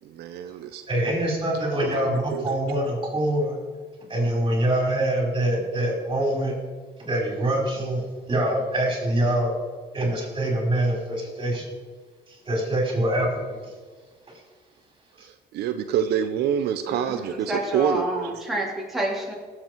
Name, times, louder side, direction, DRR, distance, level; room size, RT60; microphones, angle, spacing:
voice 1, 0.0-0.8 1.8-2.5 15.2-18.4, right 9 dB, 75° right, 8 dB, 0.8 m, -27 dB
voice 2, 0.9-3.6 4.1-6.6 7.0-8.0 8.3-9.6 9.9-11.6 12.3-13.6 14.3-14.4 15.2-15.3, right 1 dB, 30° right, 0 dB, 4.7 m, -24 dB
voice 3, 16.9-19.3, right 1 dB, ahead, -4 dB, 3.2 m, -29 dB
19.0 x 7.9 x 4.6 m, 1.5 s
cardioid pair, 110°, 17 cm